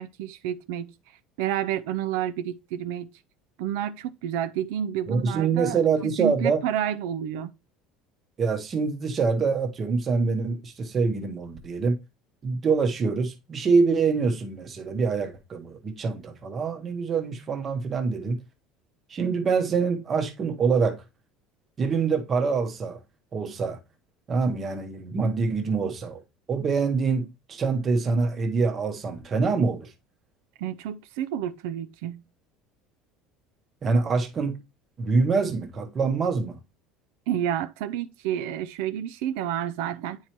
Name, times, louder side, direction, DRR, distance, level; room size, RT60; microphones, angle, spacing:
voice 1, 0.0-3.1 3.6-7.5 30.6-32.2 37.3-40.2, right 10 dB, 80° right, 0.4 m, -30 dB
voice 2, 5.1-6.6 8.4-12.0 12.4-18.4 19.1-21.0 21.8-23.0 23.3-23.8 24.3-26.2 26.5-29.9 33.8-34.6 35.0-36.6, right 4 dB, 25° right, 0.9 m, -25 dB
9.3 x 4.5 x 2.9 m
cardioid pair, 170°, 0 cm